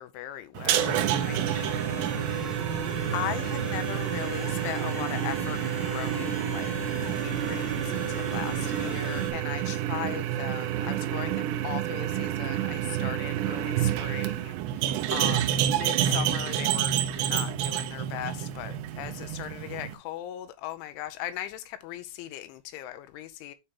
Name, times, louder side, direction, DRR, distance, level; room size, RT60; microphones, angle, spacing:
voice 1, 0.0-2.1 3.1-23.6, left 13 dB, 85° left, 3.0 m, -38 dB
sound 1, 0.5-19.9, right 11 dB, 80° right, 2.8 m, -29 dB
sound 2, 0.8-9.3, right 1 dB, 10° left, 1.3 m, -36 dB
9.0 x 4.3 x 3.7 m
omnidirectional pair, 5.5 m